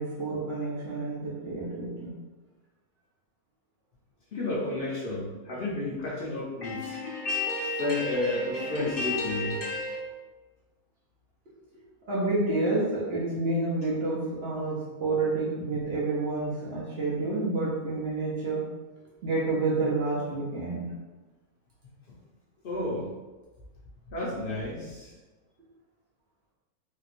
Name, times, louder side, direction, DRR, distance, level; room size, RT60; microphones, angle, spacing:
voice 1, 0.0-2.1 12.1-18.7 19.2-20.9, right 2 dB, 55° right, -6 dB, 0.9 m, -29 dB
voice 2, 4.3-10.0 15.7-15.9 22.6-23.1 24.1-25.1, left 2 dB, 55° left, -5 dB, 0.6 m, -31 dB
3.1 x 2.8 x 2.5 m, 1.2 s
omnidirectional pair, 1.5 m